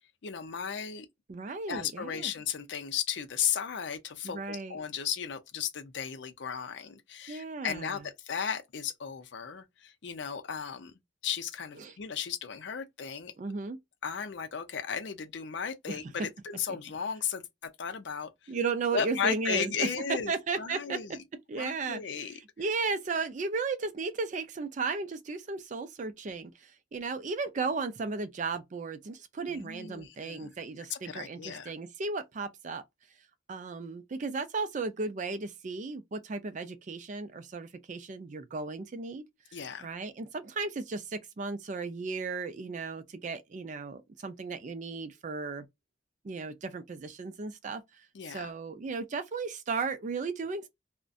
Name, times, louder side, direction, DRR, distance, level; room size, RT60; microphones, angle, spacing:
voice 1, 0.2-1.1 1.7-10.9 11.2-13.3 14.0-18.5 18.9-21.2 21.5-22.4 29.5-30.5 30.9-31.7 39.5-39.9 48.1-48.5, left 7 dB, 60° left, 0.5 m, -35 dB
voice 2, 1.3-2.3 4.2-4.8 7.3-8.0 11.8-11.9 13.4-13.8 15.9-16.0 18.5-19.9 20.3-21.2 21.5-32.8 33.5-39.2 39.8-45.7 46.2-47.8 48.3-50.7, right 4 dB, 40° right, 0.4 m, -35 dB
2.5 x 2.1 x 2.3 m
head